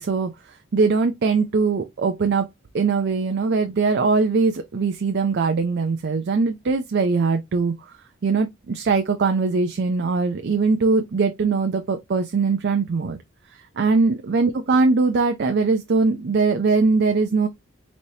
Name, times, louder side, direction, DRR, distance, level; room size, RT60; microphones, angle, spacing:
voice 1, 0.0-2.5 2.7-8.0 8.2-13.2 13.5-17.5, right 4 dB, 55° right, 0.5 m, -21 dB
4.1 x 3.2 x 2.7 m
head